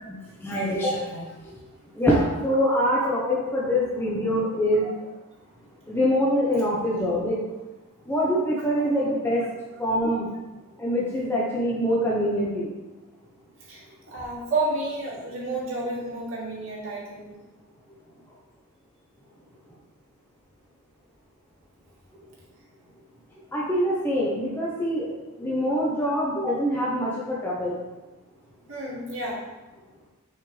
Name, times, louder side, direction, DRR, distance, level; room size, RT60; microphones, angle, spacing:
voice 1, 0.1-1.3 2.0-4.9 5.9-7.4 8.1-9.4 9.8-10.3 10.8-12.7 23.5-25.1 25.4-27.8, equal, 10° left, -5 dB, 0.9 m, -24 dB
voice 2, 3.0-3.3 13.7-13.8 14.1-17.3 28.7-29.4, right 2 dB, 70° right, -6 dB, 2.4 m, -30 dB
6.3 x 5.8 x 3.4 m, 1.1 s
head